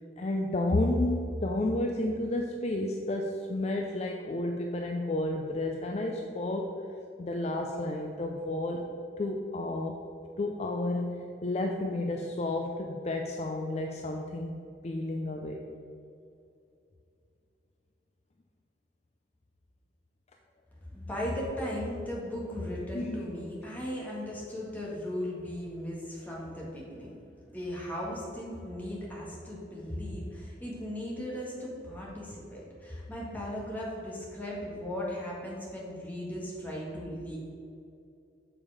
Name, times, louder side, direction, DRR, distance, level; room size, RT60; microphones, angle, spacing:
voice 1, 0.2-6.7 7.2-8.8 9.2-10.0 10.4-15.6 22.9-23.2, left 1 dB, 40° left, 2 dB, 0.4 m, -31 dB
voice 2, 20.9-27.2 27.5-37.4, left 1 dB, 10° left, -5 dB, 1.7 m, -37 dB
7.2 x 4.9 x 4.9 m, 2.6 s
head